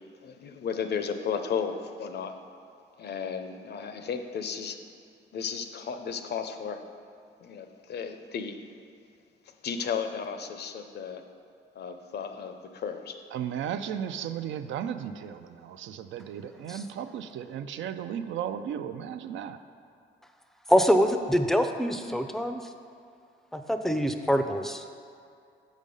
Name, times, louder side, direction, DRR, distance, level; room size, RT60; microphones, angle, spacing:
voice 1, 0.2-2.4 3.0-4.8 5.3-6.8 7.4-8.6 9.6-11.2 11.8-13.2, left 6 dB, 55° left, 7 dB, 0.6 m, -34 dB
voice 2, 13.3-19.6, right 9 dB, 70° right, 10 dB, 0.4 m, -35 dB
voice 3, 20.7-22.6 23.5-24.9, equal, ahead, 7 dB, 0.4 m, -25 dB
6.3 x 5.1 x 5.3 m, 2.4 s
cardioid pair, 90°, 20 cm